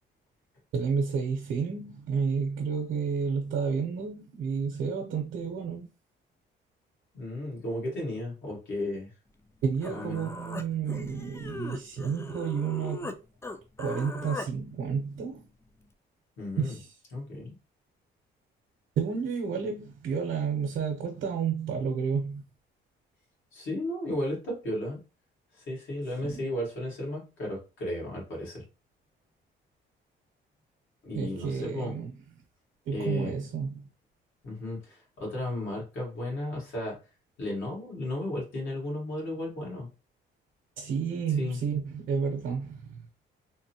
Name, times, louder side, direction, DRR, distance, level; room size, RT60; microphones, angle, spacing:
voice 1, 0.7-5.9 9.6-13.1 13.8-15.4 16.6-17.0 19.0-22.4 26.2-26.4 31.1-32.1 32.9-33.9 40.8-43.0, right 6 dB, 75° right, 0.7 m, -31 dB
voice 2, 7.1-9.1 9.9-10.3 16.4-16.7 17.1-17.5 23.5-25.0 25.5-28.6 31.0-32.0 32.9-33.3 34.4-36.9 37.4-39.9 41.4-41.6, left 1 dB, 75° left, 1.8 m, -34 dB
Human voice, 9.5-9.6 9.8-13.2 13.4-14.5, left 2 dB, 15° left, 0.3 m, -39 dB
3.6 x 2.1 x 2.8 m
cardioid pair, 90°, 20 cm